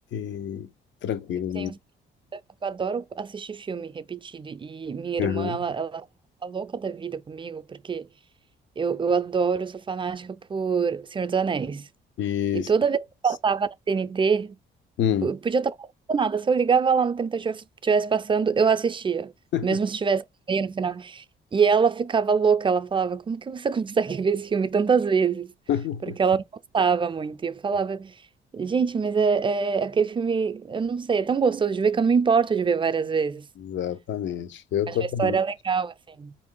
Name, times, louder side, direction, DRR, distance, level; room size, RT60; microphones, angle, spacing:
voice 1, 0.1-0.7 1.0-1.7 5.2-5.6 12.2-12.7 15.0-15.3 19.5-19.7 25.7-26.2 33.6-35.4, left 9 dB, 70° left, 0.7 m, -27 dB
voice 2, 2.3-6.0 6.4-8.1 8.8-11.9 12.5-13.0 13.2-14.6 15.2-19.3 19.6-20.2 20.5-21.2 21.5-25.5 26.0-26.4 26.7-28.1 28.5-33.5 34.9-36.3, right 5 dB, 25° right, 0.4 m, -25 dB
4.4 x 2.6 x 3.8 m
cardioid pair, 90°, 20 cm